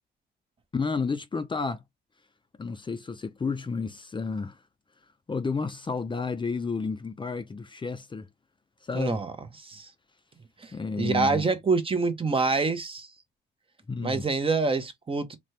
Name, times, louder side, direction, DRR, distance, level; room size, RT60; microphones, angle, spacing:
voice 1, 0.7-1.8 2.6-4.6 5.3-8.3 8.8-9.2 10.7-11.4 13.9-14.2, left 4 dB, 25° left, 0.6 m, -31 dB
voice 2, 8.9-9.3 9.6-9.9 10.6-13.1 14.0-15.4, right 4 dB, 25° right, 0.9 m, -26 dB
4.1 x 2.3 x 3.2 m
cardioid pair, 90°, 20 cm